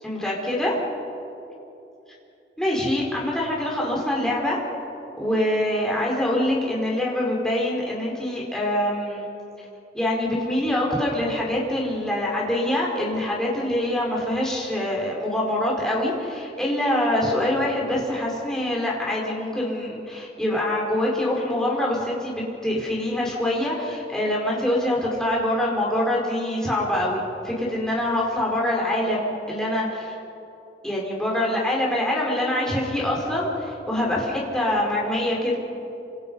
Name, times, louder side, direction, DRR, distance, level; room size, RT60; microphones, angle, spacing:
voice 1, 0.0-0.8 2.6-4.6 5.2-9.3 9.9-30.2 30.8-35.6, left 1 dB, 5° left, -4 dB, 4.8 m, -25 dB
29.0 x 26.5 x 5.6 m, 2.9 s
head